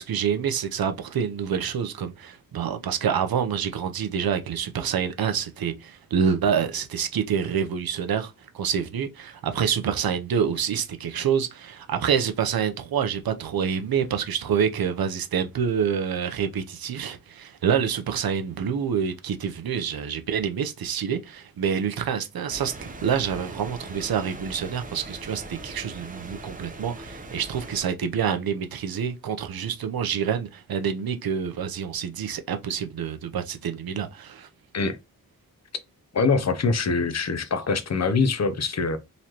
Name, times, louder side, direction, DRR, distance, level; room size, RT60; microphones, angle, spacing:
voice 1, 0.0-22.7 23.0-34.5, right 7 dB, 85° right, 0.7 m, -27 dB
sound 1, 22.5-27.8, right 2 dB, 25° right, 0.7 m, -40 dB
voice 2, 36.1-39.0, left 4 dB, 50° left, 0.6 m, -24 dB
3.9 x 3.1 x 2.9 m
wide cardioid pair, 120°, 35 cm